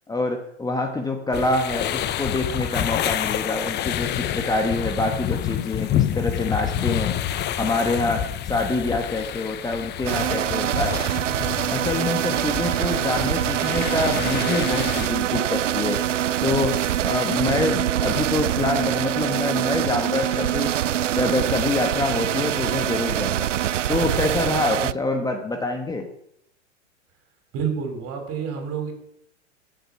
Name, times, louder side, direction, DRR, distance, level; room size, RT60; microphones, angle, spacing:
voice 1, 0.1-7.1 7.6-10.9 11.7-16.0 16.4-20.7 21.2-23.5 23.9-26.1, left 2 dB, 10° left, 4 dB, 1.4 m, -26 dB
sound 1, 1.3-15.1, left 11 dB, 30° left, 0.9 m, -28 dB
sound 2, 10.1-24.9, right 11 dB, 90° right, 0.5 m, -24 dB
voice 2, 27.5-28.9, right 7 dB, 40° right, 4 dB, 5.1 m, -28 dB
16.5 x 7.8 x 5.9 m, 0.73 s
hypercardioid pair, 105°, 36 cm